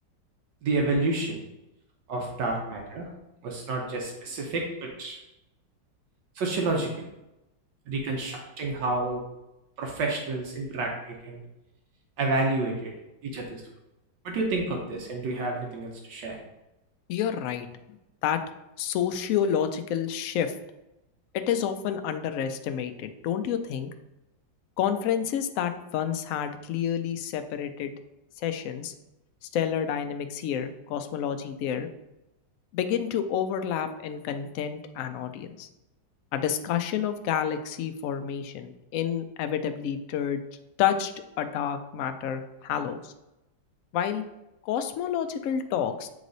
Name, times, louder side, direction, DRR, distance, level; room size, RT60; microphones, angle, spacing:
voice 1, 0.6-1.4 2.1-3.1 3.4-5.2 6.3-7.1 7.9-9.2 9.8-11.4 12.2-12.9 13.2-13.6 14.2-16.4, right 2 dB, 75° right, 0 dB, 1.5 m, -29 dB
voice 2, 17.1-17.7 18.2-18.4 18.8-20.5 21.3-23.9 24.8-28.0 28.4-28.9 29.5-31.9 32.7-35.7 36.3-40.4 40.8-41.1 41.4-43.1 43.9-44.2 44.6-46.1, left 9 dB, 75° left, 8 dB, 0.7 m, -29 dB
8.1 x 3.2 x 3.9 m, 0.93 s
omnidirectional pair, 1.9 m